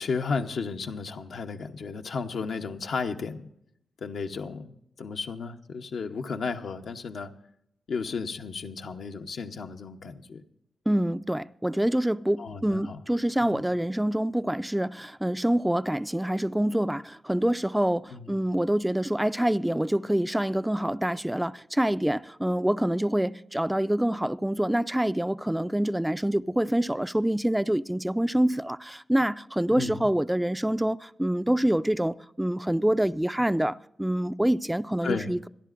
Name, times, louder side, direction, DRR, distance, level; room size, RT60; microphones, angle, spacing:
voice 1, 0.0-3.4 4.0-4.7 5.0-7.3 7.9-10.4 12.4-13.0 13.4-13.6 18.1-18.3 29.7-30.0 35.0-35.4, left 5 dB, 75° left, 0.9 m, -33 dB
voice 2, 10.9-35.4, right 1 dB, 10° right, 0.4 m, -26 dB
26.5 x 10.5 x 2.5 m
cardioid pair, 60°, 0 cm